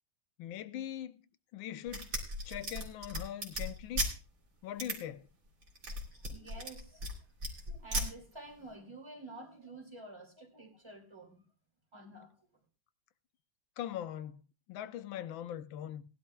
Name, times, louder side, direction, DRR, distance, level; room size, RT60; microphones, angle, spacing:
voice 1, 0.4-1.2 1.5-2.1 2.4-4.0 4.6-5.3 13.8-14.4 14.7-16.0, left 11 dB, 85° left, 1.5 m, -41 dB
sound 1, 1.9-4.1 4.8-4.9 5.6-7.1 7.4-8.1, right 1 dB, 45° right, 2.6 m, -36 dB
voice 2, 6.3-7.1 7.5-11.4 11.9-12.3, right 2 dB, 15° right, 2.5 m, -50 dB
19.0 x 11.5 x 2.3 m
omnidirectional pair, 2.1 m